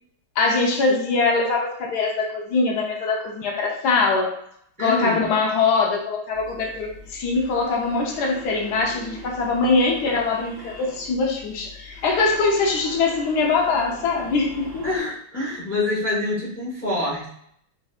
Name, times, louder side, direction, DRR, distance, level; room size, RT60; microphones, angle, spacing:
voice 1, 0.4-4.3 4.8-14.9, left 4 dB, 70° left, 1 dB, 1.1 m, -22 dB
voice 2, 4.8-5.3 14.8-17.3, left 2 dB, 15° left, -6 dB, 0.4 m, -26 dB
sound 1, 6.3-15.0, left 1 dB, 65° right, 0.6 m, -42 dB
4.0 x 2.5 x 2.4 m, 0.69 s
omnidirectional pair, 2.1 m